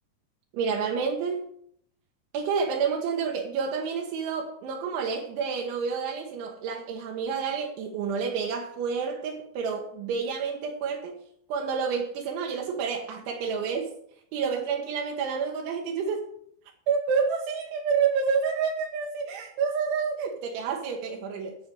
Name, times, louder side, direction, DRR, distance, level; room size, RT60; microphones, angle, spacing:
voice 1, 0.5-1.5 2.3-11.2 11.5-13.9 14.3-16.3 16.9-21.6, right 6 dB, 80° right, 3.7 m, -29 dB
13.5 x 5.3 x 7.7 m
omnidirectional pair, 5.5 m